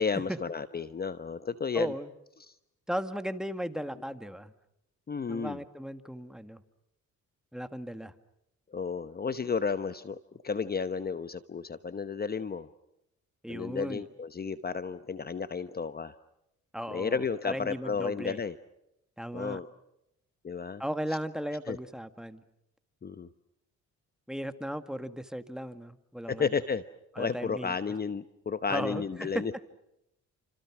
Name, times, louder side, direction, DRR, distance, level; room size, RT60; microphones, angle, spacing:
voice 1, 0.0-1.9 5.1-5.6 8.7-10.2 10.4-12.7 13.5-16.1 16.9-18.6 19.3-19.7 20.4-20.8 21.7-21.8 23.0-23.3 26.3-26.8 27.2-29.5, left 5 dB, 30° left, 12 dB, 1.0 m, -32 dB
voice 2, 1.7-2.1 2.9-4.5 5.3-6.6 7.5-8.1 13.4-14.0 16.7-18.4 19.2-19.6 20.8-22.4 24.3-26.5 27.2-27.7 28.7-29.4, equal, ahead, 9 dB, 1.9 m, -36 dB
30.0 x 27.0 x 6.1 m, 0.82 s
cardioid pair, 90°, 30 cm